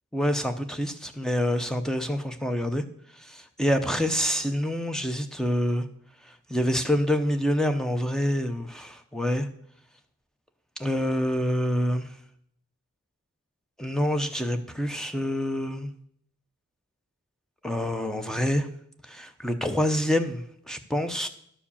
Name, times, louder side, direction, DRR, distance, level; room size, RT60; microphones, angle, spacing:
voice 1, 0.1-2.8 3.2-5.9 6.5-9.5 10.8-12.1 13.8-15.9 17.6-18.7 19.1-21.3, equal, 5° left, 8 dB, 0.6 m, -26 dB
11.0 x 4.9 x 7.0 m, 0.69 s
head